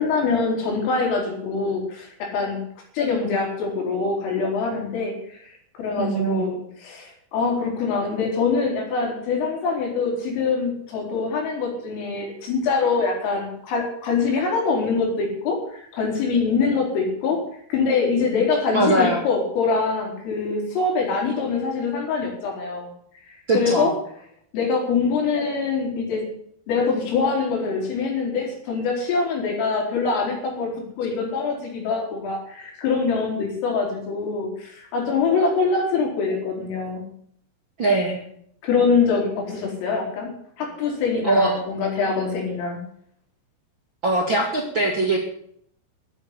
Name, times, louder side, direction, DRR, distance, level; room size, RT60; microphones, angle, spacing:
voice 1, 0.0-2.6 2.9-17.4 17.7-22.9 23.3-23.9 24.5-26.2 26.7-30.7 31.0-37.0 38.6-40.3 40.6-42.8, left 4 dB, 80° left, 0 dB, 6.8 m, -24 dB
voice 2, 6.0-6.5 18.7-19.2 23.5-24.0 37.8-38.2 41.2-41.5 44.0-45.2, right 2 dB, 40° right, -1 dB, 1.8 m, -21 dB
14.5 x 8.5 x 9.7 m, 0.66 s
omnidirectional pair, 5.7 m